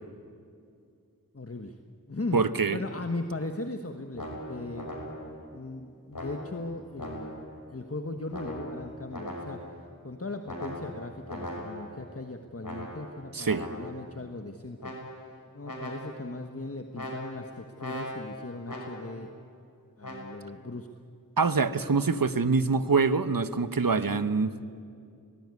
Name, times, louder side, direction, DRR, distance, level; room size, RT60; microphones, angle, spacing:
voice 1, 1.3-1.8 2.1-2.4 2.7-4.9 5.5-7.3 7.7-9.7 10.0-14.9 15.5-19.3 20.0-20.9 23.9-24.3, left 2 dB, 40° left, 6 dB, 1.3 m, -38 dB
voice 2, 2.3-2.8 13.3-13.7 21.4-24.5, right 4 dB, 70° right, 13 dB, 1.1 m, -25 dB
sound 1, 4.1-5.5 6.1-7.6 8.3-9.8 10.5-12.1 12.6-14.1 14.8-15.4 15.6-16.4 16.9-19.3 20.0-20.4, equal, 65° left, 6.3 m, -39 dB
25.0 x 19.0 x 9.7 m, 2.4 s
wide cardioid pair, 45°, 35 cm